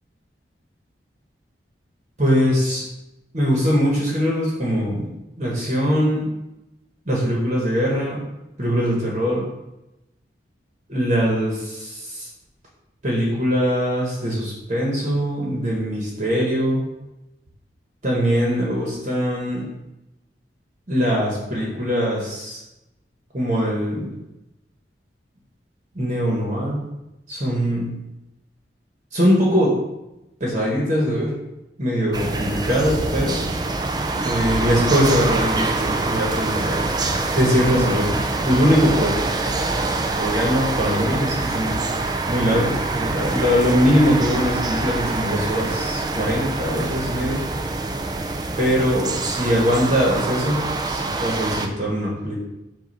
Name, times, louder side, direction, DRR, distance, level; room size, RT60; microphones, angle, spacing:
voice 1, 2.2-2.8 3.3-5.1 5.4-6.3 7.1-8.2 8.6-9.4 10.9-12.3 13.0-16.8 18.0-19.7 20.9-22.6 23.3-24.1 25.9-26.8 27.3-27.9 29.1-29.8 30.4-31.3 31.8-33.4 34.1-37.0 37.3-39.1 40.2-41.8 42.3-47.4 48.6-52.5, equal, 40° right, -4 dB, 1.2 m, -21 dB
sound 1, 32.1-51.7, right 3 dB, 25° right, 0.4 m, -25 dB
7.8 x 2.6 x 5.4 m, 0.94 s
head